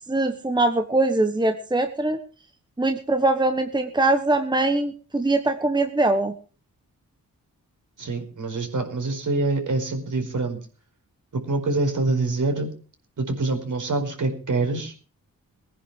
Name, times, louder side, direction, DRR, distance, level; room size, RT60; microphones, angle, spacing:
voice 1, 0.1-2.2 2.8-6.3, right 2 dB, 15° right, 7 dB, 1.2 m, -22 dB
voice 2, 8.0-10.6 11.3-12.7 13.2-14.9, right 2 dB, 60° right, 4 dB, 4.8 m, -25 dB
20.5 x 10.0 x 4.9 m, 0.38 s
wide cardioid pair, 125°, 35 cm